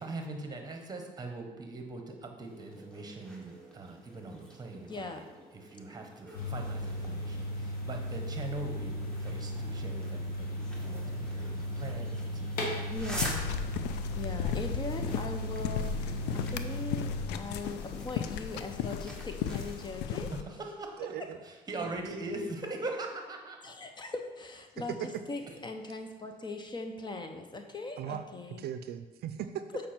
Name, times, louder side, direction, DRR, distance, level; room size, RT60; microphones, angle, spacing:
voice 1, 0.0-5.2 5.5-12.8 20.1-21.0 21.4-23.6, right 2 dB, 25° right, 3 dB, 1.2 m, -41 dB
sound 1, 2.4-19.9, equal, 5° left, 1.4 m, -47 dB
voice 2, 4.8-5.3 12.9-20.3 23.6-28.7 29.7-29.9, left 2 dB, 25° left, 6 dB, 0.7 m, -40 dB
sound 2, 6.3-17.2, equal, 60° left, 1.6 m, -36 dB
sound 3, 13.0-20.4, left 9 dB, 85° left, 0.4 m, -36 dB
voice 3, 21.0-21.4 21.8-22.4 28.0-28.2 28.6-29.6, right 10 dB, 70° right, 10 dB, 0.5 m, -39 dB
7.2 x 5.2 x 4.5 m, 1.2 s
cardioid pair, 110°, 17 cm